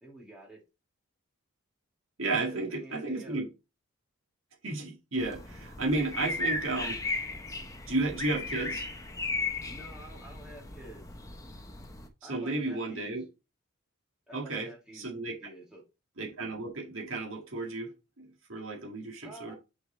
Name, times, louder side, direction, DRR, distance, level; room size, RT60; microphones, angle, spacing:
voice 1, 0.0-0.6 2.5-3.4 5.9-6.0 9.7-11.0 12.2-13.2 14.3-15.1 15.4-15.8 19.2-19.5, right 1 dB, 5° right, 2.4 m, -49 dB
voice 2, 2.2-3.5 4.6-7.0 7.9-8.9 12.3-13.3 14.3-15.4 16.2-19.5, right 2 dB, 60° right, 2.0 m, -33 dB
sound 1, 5.2-12.1, left 3 dB, 15° left, 0.7 m, -36 dB
6.5 x 4.6 x 4.3 m
head